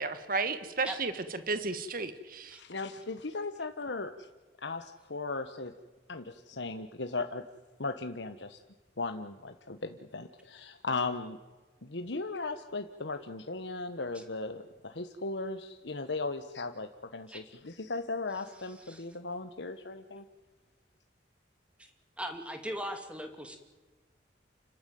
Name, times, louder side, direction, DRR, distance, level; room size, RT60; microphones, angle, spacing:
voice 1, 0.0-2.6, right 3 dB, 50° right, 10 dB, 1.4 m, -33 dB
voice 2, 2.6-4.3 4.6-5.7 6.1-7.4 7.8-8.6 9.0-11.4 11.8-20.2, left 3 dB, 80° left, 7 dB, 1.3 m, -37 dB
voice 3, 22.2-23.6, equal, 5° right, 5 dB, 2.7 m, -38 dB
29.5 x 13.0 x 9.3 m, 1.3 s
head